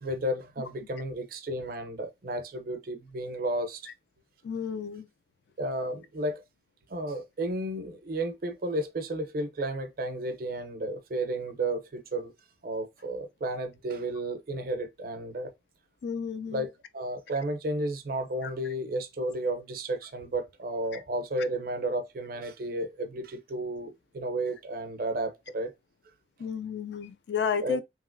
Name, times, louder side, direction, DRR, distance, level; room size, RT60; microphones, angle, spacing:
voice 1, 0.0-3.8 5.6-6.4 6.9-12.3 12.6-15.5 16.5-25.7 27.6-27.8, right 1 dB, 55° right, 0.5 m, -32 dB
voice 2, 4.4-5.1 16.0-16.7 20.9-21.0 26.4-27.8, left 6 dB, 75° left, 0.3 m, -32 dB
2.9 x 2.8 x 2.5 m
head